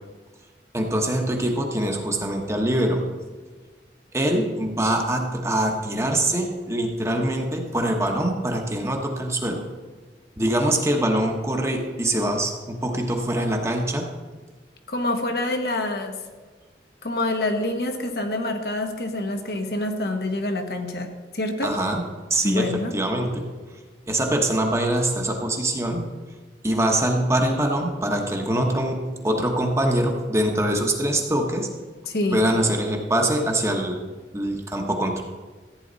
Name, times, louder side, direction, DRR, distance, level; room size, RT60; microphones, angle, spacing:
voice 1, 0.7-3.0 4.1-9.6 10.4-14.1 21.6-22.0 22.3-22.7 22.9-23.5 24.1-26.1 26.6-31.7 32.3-34.0 34.3-35.2, right 1 dB, 15° right, 2 dB, 1.2 m, -23 dB
voice 2, 14.9-16.2 17.0-21.8 22.4-22.9 32.1-32.5, left 2 dB, 60° left, 4 dB, 1.2 m, -26 dB
14.5 x 9.3 x 4.1 m, 1.4 s
head